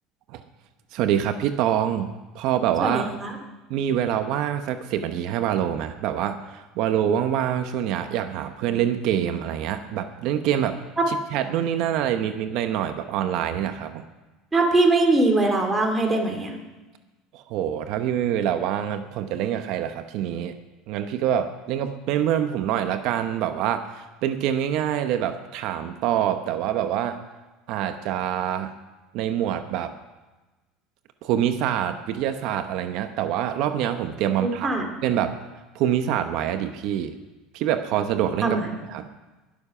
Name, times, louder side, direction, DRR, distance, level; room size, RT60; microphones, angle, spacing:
voice 1, 0.9-2.1 2.3-3.1 3.7-10.8 11.1-14.0 17.3-20.5 20.9-27.2 27.7-28.7 29.1-29.9 31.2-34.8 35.0-35.4 35.7-37.1 37.5-38.6 38.9-39.0, right 10 dB, 60° right, 8 dB, 0.9 m, -25 dB
voice 2, 2.8-3.4 11.0-11.1 14.5-16.6 34.4-34.9 38.4-38.7, right 2 dB, 10° right, 2 dB, 2.3 m, -22 dB
21.5 x 7.2 x 5.7 m, 1.1 s
supercardioid pair, 140°, 0 cm